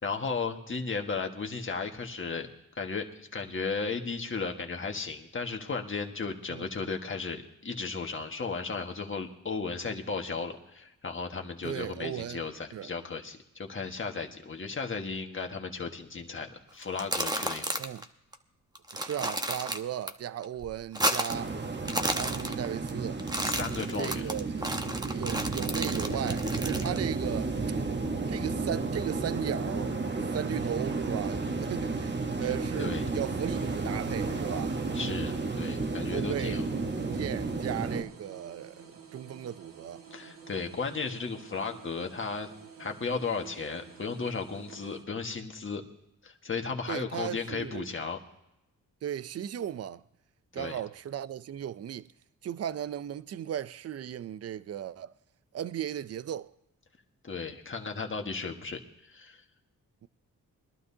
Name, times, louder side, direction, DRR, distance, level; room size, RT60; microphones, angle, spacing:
voice 1, 0.0-2.5 2.7-17.7 23.4-24.2 32.8-33.0 34.9-36.6 40.1-42.5 42.8-45.8 46.2-48.2 50.6-50.8 57.2-59.4, left 4 dB, 40° left, 1.6 m, -35 dB
voice 2, 11.6-12.4 12.7-12.9 17.8-18.0 18.9-21.6 22.2-23.2 24.0-24.6 25.1-27.5 28.3-34.8 36.1-40.0 46.9-47.9 49.0-50.0 50.5-52.1 52.4-55.1 55.5-56.5 60.0-60.1, right 10 dB, 50° right, 0.5 m, -36 dB
sound 1, 16.8-18.0 18.3-18.4 18.8-20.1 20.4-21.5 21.8-22.9 23.2-27.0, right 1 dB, 10° right, 1.0 m, -32 dB
sound 2, 21.3-38.0, right 3 dB, 35° right, 1.2 m, -32 dB
sound 3, 33.2-45.0, right 6 dB, 80° right, 2.0 m, -50 dB
21.5 x 12.0 x 2.8 m
cardioid pair, 70°, 33 cm